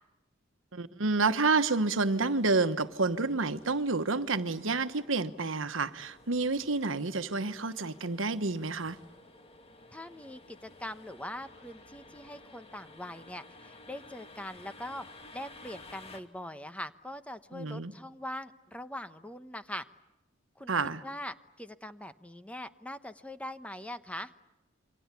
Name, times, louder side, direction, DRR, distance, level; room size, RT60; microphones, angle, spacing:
voice 1, 0.7-9.0 17.5-17.9 20.7-21.0, right 3 dB, 85° right, 1.3 m, -29 dB
sound 1, 2.0-16.2, left 2 dB, 30° left, 2.3 m, -54 dB
voice 2, 9.9-15.1 15.3-19.8 20.6-20.7 21.0-24.3, left 1 dB, 5° left, 0.9 m, -42 dB
28.0 x 24.5 x 8.4 m
head